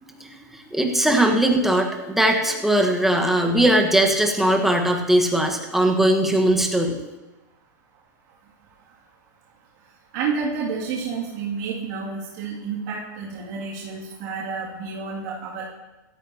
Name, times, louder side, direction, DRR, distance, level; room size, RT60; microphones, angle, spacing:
voice 1, 0.2-7.0, right 1 dB, 5° right, 1 dB, 1.5 m, -20 dB
voice 2, 10.1-15.7, right 5 dB, 60° right, -6 dB, 2.7 m, -30 dB
16.0 x 13.0 x 3.0 m, 1.1 s
hypercardioid pair, 125°, 10 cm